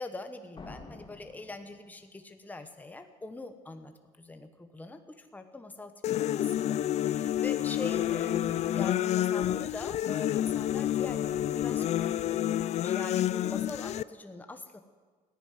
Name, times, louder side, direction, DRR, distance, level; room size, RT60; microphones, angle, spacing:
voice 1, 0.0-14.8, left 3 dB, 10° left, 7 dB, 1.2 m, -43 dB
sound 1, 0.6-2.4, left 3 dB, 30° left, 2.2 m, -49 dB
sound 2, 6.0-14.0, left 12 dB, 45° left, 0.4 m, -29 dB
14.5 x 10.5 x 9.3 m, 1.4 s
cardioid pair, 105°, 16 cm